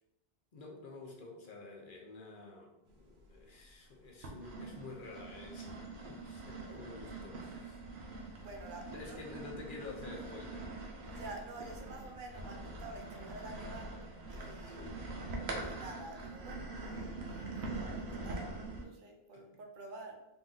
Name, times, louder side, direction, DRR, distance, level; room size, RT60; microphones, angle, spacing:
voice 1, 0.5-5.7 6.0-7.8 8.9-10.7 14.6-15.0 19.3-19.4, left 3 dB, 55° left, -1 dB, 1.0 m, -49 dB
sound 1, 3.0-3.7 4.2-18.8, right 2 dB, 90° right, 1.1 m, -44 dB
voice 2, 8.3-9.2 11.1-13.9 14.3-20.3, right 2 dB, 55° right, 3 dB, 0.8 m, -49 dB
4.2 x 2.8 x 3.8 m, 0.95 s
omnidirectional pair, 1.0 m